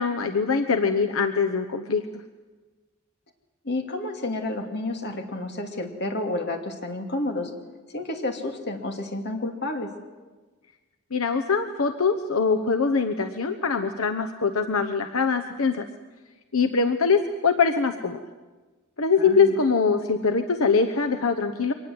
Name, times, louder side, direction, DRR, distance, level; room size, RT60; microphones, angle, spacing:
voice 1, 0.0-2.0 11.1-15.8 16.5-18.2 19.0-21.7, left 5 dB, 80° left, 6 dB, 1.1 m, -23 dB
voice 2, 3.6-7.5 7.9-9.9 19.2-19.5, left 2 dB, 55° left, 4 dB, 2.6 m, -30 dB
24.0 x 19.5 x 7.9 m, 1.3 s
head